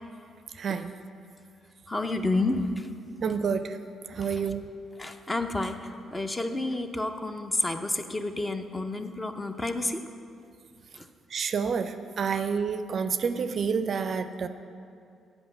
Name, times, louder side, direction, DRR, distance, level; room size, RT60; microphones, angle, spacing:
voice 1, 0.6-0.9 3.2-3.8 4.1-4.7 11.3-14.5, right 6 dB, 55° right, 10 dB, 0.4 m, -29 dB
voice 2, 1.9-2.9 4.1-4.4 5.0-10.0 11.0-11.1, left 2 dB, 20° left, 7 dB, 0.6 m, -30 dB
8.0 x 5.4 x 7.7 m, 2.4 s
cardioid pair, 90°, 0 cm